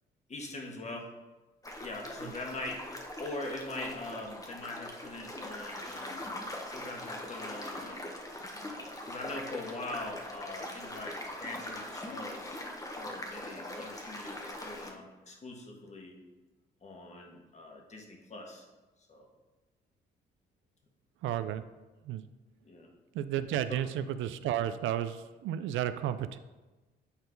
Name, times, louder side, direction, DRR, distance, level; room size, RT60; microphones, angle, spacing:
voice 1, 0.3-1.1 1.8-2.9 3.2-6.4 6.7-8.0 9.0-12.6 13.0-16.2 16.8-18.7 19.1-19.3 22.6-22.9 23.7-23.8, left 2 dB, 35° left, 1 dB, 1.6 m, -42 dB
sound 1, 1.6-14.9, left 1 dB, 15° left, 1.1 m, -42 dB
voice 2, 21.2-21.6 22.0-22.2 23.1-26.4, right 11 dB, 80° right, 12 dB, 0.4 m, -32 dB
8.4 x 4.4 x 3.9 m, 1.2 s
cardioid pair, 90°, 20 cm